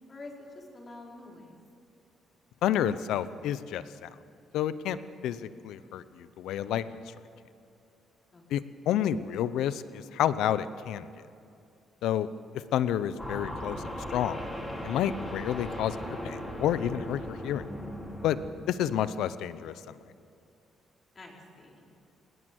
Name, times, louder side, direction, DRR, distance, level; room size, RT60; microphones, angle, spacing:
voice 1, 0.1-1.6 8.3-8.4 18.3-18.7 21.1-21.8, left 2 dB, 35° left, -1 dB, 4.9 m, -47 dB
voice 2, 2.6-4.1 4.5-5.0 5.2-7.0 8.5-11.1 12.0-12.3 12.7-14.5 14.8-17.6 18.2-18.4 18.7-20.0, left 10 dB, 85° left, 14 dB, 0.8 m, -30 dB
sound 1, 13.2-18.5, equal, 10° left, 5.7 m, -38 dB
20.5 x 19.0 x 7.8 m, 2.5 s
cardioid pair, 90°, 0 cm